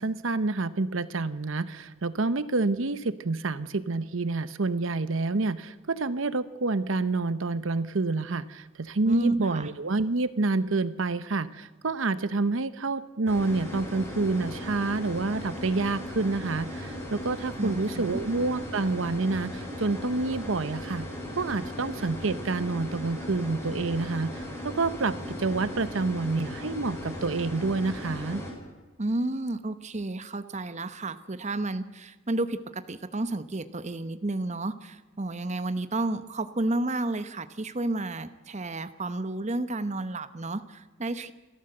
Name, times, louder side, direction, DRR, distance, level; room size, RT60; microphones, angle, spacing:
voice 1, 0.0-21.1 21.4-28.4, right 3 dB, 70° right, 14 dB, 0.8 m, -28 dB
voice 2, 9.0-9.7 17.6-18.2 29.0-41.3, right 2 dB, 35° right, 11 dB, 1.0 m, -31 dB
sound 1, 13.3-28.5, left 1 dB, 15° left, 6.0 m, -37 dB
29.0 x 13.0 x 7.9 m, 1.2 s
head